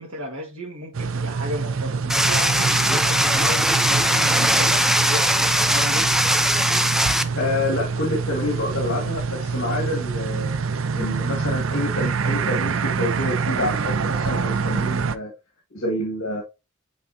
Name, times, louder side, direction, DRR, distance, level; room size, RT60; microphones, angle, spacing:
voice 1, 0.0-5.4 5.7-6.1, equal, 85° right, 1.7 m, -34 dB
sound 1, 0.9-15.1, right 5 dB, 65° right, 0.5 m, -26 dB
sound 2, 2.1-7.2, equal, ahead, 0.4 m, -20 dB
voice 2, 7.3-10.5 10.9-15.3 15.7-16.4, left 1 dB, 75° left, 1.9 m, -27 dB
9.3 x 3.8 x 2.7 m
head